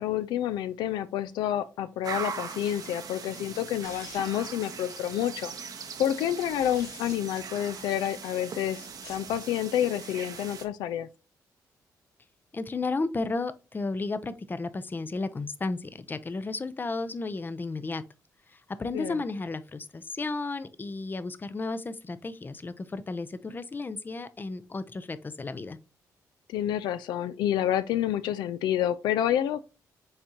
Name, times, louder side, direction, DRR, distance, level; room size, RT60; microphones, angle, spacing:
voice 1, 0.0-5.5 6.0-11.1 18.9-19.2 26.5-29.6, left 11 dB, 85° left, 0.3 m, -29 dB
sound 1, 2.0-10.7, right 6 dB, 60° right, 0.8 m, -40 dB
sound 2, 3.8-4.5 6.4-7.2 8.9-9.3, left 3 dB, 50° left, 1.8 m, -47 dB
voice 2, 12.5-18.0 18.8-25.8, left 3 dB, 25° left, 0.5 m, -33 dB
5.5 x 3.6 x 2.7 m
supercardioid pair, 65°, 7 cm